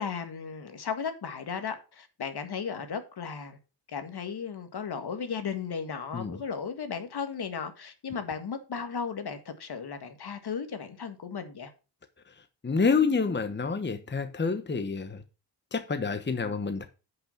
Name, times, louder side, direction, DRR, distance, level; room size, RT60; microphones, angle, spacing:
voice 1, 0.0-3.6 3.9-11.7, left 6 dB, 65° left, 1.9 m, -35 dB
voice 2, 12.6-15.2 15.7-16.8, left 5 dB, 25° left, 1.1 m, -28 dB
9.9 x 5.8 x 5.8 m
cardioid pair, 90°, 42 cm